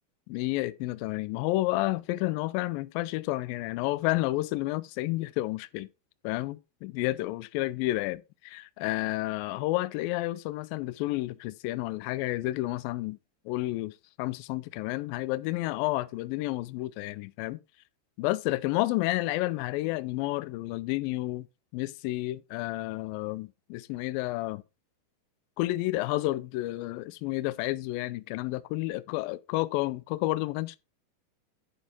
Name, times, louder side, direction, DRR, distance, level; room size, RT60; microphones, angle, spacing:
voice 1, 0.3-5.9 6.2-13.2 13.5-17.6 18.2-21.5 21.7-24.6 25.6-30.8, left 18 dB, 85° left, 2.1 m, -30 dB
10.5 x 4.5 x 4.3 m
omnidirectional pair, 4.6 m